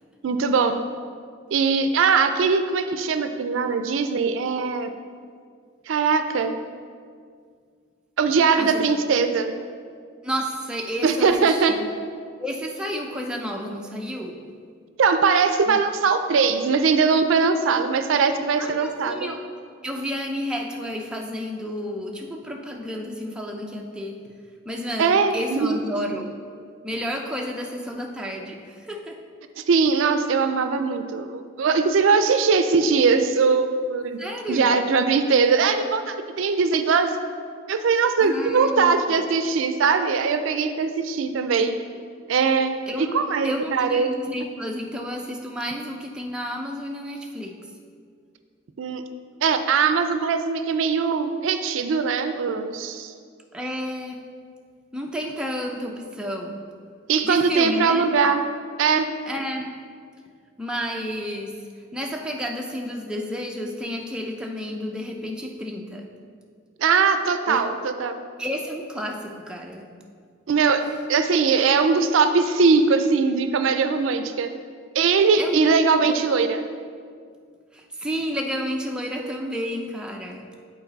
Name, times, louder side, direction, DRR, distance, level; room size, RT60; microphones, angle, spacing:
voice 1, 0.2-0.8 1.5-5.0 5.9-6.5 8.2-9.5 11.0-11.7 15.0-19.3 25.0-25.8 29.6-34.2 34.5-37.1 37.7-41.7 42.3-44.1 48.8-49.0 49.4-53.1 57.1-58.4 58.8-59.1 66.8-68.1 70.5-70.8 71.1-74.5 74.9-76.6, right 5 dB, 75° right, 9 dB, 0.4 m, -21 dB
voice 2, 8.5-8.9 10.2-11.9 12.4-14.4 15.7-15.8 17.7-19.4 19.8-24.2 24.7-26.3 26.8-29.2 34.2-34.7 38.2-39.1 42.9-43.2 43.4-47.5 53.5-54.2 54.9-56.6 57.2-58.1 59.3-59.6 60.6-61.6 61.9-66.1 67.5-67.6 68.4-69.9 75.4-75.7 76.0-76.2 77.7-80.4, equal, 5° right, 1 dB, 0.4 m, -31 dB
8.3 x 4.0 x 3.9 m, 2.1 s
head